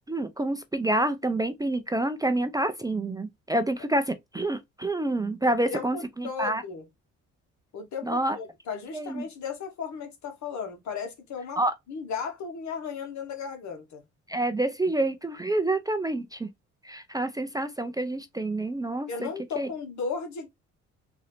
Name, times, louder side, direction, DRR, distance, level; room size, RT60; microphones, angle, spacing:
voice 1, 0.1-6.6 8.0-8.4 8.9-9.2 11.6-11.7 14.3-16.5 16.8-19.3 19.6-19.7, right 1 dB, 15° right, 0.4 m, -28 dB
voice 2, 5.4-6.8 7.7-11.6 11.9-14.0 19.1-20.5, left 6 dB, 70° left, 1.4 m, -35 dB
3.8 x 2.7 x 3.3 m
cardioid pair, 90°, 30 cm